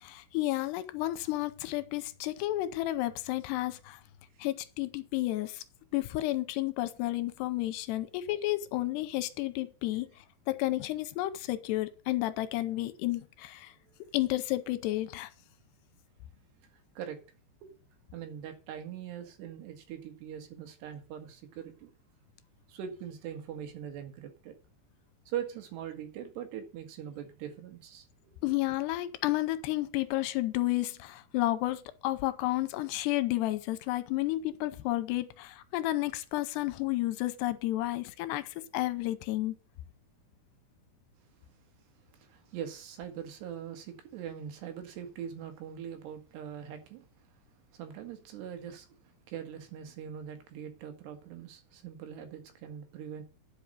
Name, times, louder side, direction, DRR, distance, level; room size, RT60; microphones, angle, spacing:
voice 1, 0.0-4.0 4.4-5.6 5.9-10.1 10.5-13.7 14.1-15.3 28.4-39.5, left 16 dB, 90° left, 2.9 m, -31 dB
voice 2, 16.7-17.2 17.6-17.7 18.1-21.9 22.7-24.6 25.3-28.4 42.1-47.3 47.7-48.9 49.3-53.2, right 9 dB, 80° right, 3.8 m, -42 dB
11.0 x 5.7 x 6.5 m
omnidirectional pair, 4.8 m